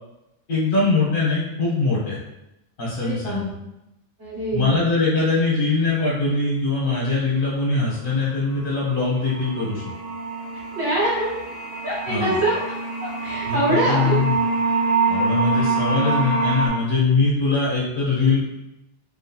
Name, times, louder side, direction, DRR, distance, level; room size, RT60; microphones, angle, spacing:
voice 1, 0.5-2.2 2.8-3.5 4.5-9.8 12.1-12.4 13.5-14.4 15.1-18.4, left 3 dB, 55° left, -6 dB, 0.8 m, -22 dB
voice 2, 3.0-3.4 4.2-4.8 10.7-11.3 11.8-12.6 13.0-14.2, right 1 dB, 65° right, -9 dB, 1.4 m, -24 dB
sound 1, 8.7-8.8 9.0-16.7, right 3 dB, 15° right, 1.2 m, -25 dB
2.7 x 2.6 x 2.2 m, 0.90 s
omnidirectional pair, 1.1 m